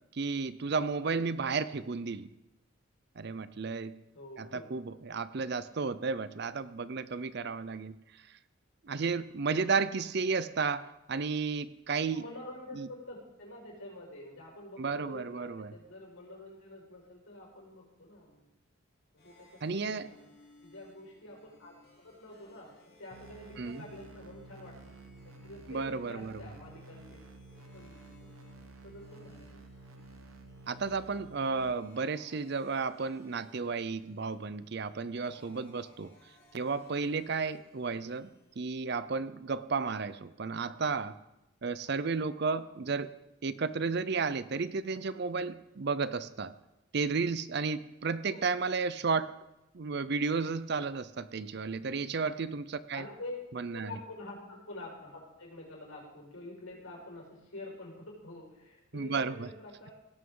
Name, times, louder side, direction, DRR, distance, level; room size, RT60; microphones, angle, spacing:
voice 1, 0.1-2.3 3.2-3.9 4.4-8.0 8.8-12.2 12.8-12.9 14.8-15.7 19.6-20.1 23.6-23.8 25.7-26.4 30.7-36.1 36.5-38.3 38.6-41.2 41.6-43.1 43.4-46.5 46.9-49.3 49.7-53.0 53.6-53.9 58.9-59.5, right 4 dB, 50° right, 15 dB, 0.5 m, -33 dB
voice 2, 4.1-4.7 12.1-18.5 19.1-20.2 20.6-24.8 25.2-27.2 27.7-28.3 28.8-29.6 41.9-42.0 48.3-48.5 52.9-53.4 53.7-59.9, left 2 dB, 80° left, -3 dB, 5.3 m, -47 dB
sound 1, 19.2-38.9, left 1 dB, 50° left, 3.0 m, -62 dB
sound 2, 23.1-31.7, right 2 dB, 85° right, 1.1 m, -52 dB
17.5 x 11.5 x 3.9 m, 0.94 s
head